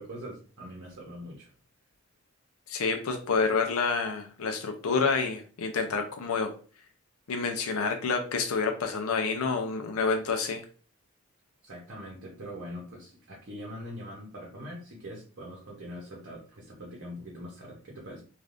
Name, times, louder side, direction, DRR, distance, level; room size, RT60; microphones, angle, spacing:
voice 1, 0.0-1.5 11.6-18.2, equal, 55° right, -3 dB, 0.8 m, -42 dB
voice 2, 2.7-6.5 7.3-10.6, left 4 dB, 70° left, 4 dB, 0.5 m, -28 dB
3.3 x 2.4 x 2.5 m, 0.40 s
head